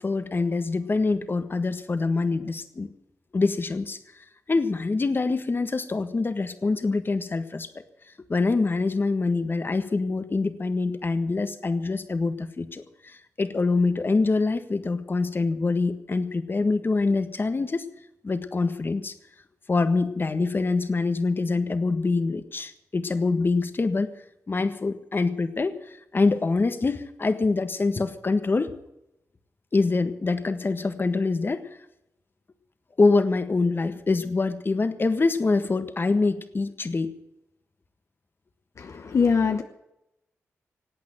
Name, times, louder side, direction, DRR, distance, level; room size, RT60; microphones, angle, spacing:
voice 1, 0.0-2.9 3.3-4.0 4.5-7.7 8.3-17.8 18.2-19.1 19.7-24.1 24.5-25.8 26.1-28.7 29.7-31.6 33.0-37.1, left 3 dB, 40° left, 10 dB, 1.5 m, -25 dB
voice 2, 38.8-39.6, left 5 dB, 60° left, 6 dB, 1.1 m, -23 dB
18.5 x 8.5 x 9.1 m, 0.86 s
cardioid pair, 65°, 6 cm